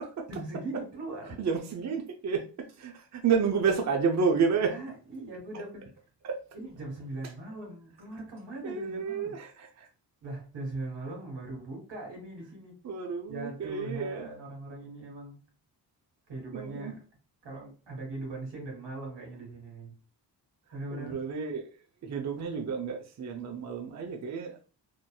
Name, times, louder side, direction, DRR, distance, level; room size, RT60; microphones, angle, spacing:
voice 1, 0.3-1.4 4.7-5.8 6.5-9.4 10.2-12.8 13.3-15.4 16.3-17.0 17.4-19.9 20.7-21.2, right 2 dB, 80° right, 1.6 m, -40 dB
voice 2, 1.4-4.7 6.2-6.4 8.6-9.9 12.8-14.3 16.5-16.9 20.9-21.7 22.0-24.6, right 5 dB, 40° right, 0.5 m, -30 dB
2.9 x 2.6 x 2.2 m
cardioid pair, 65°, 43 cm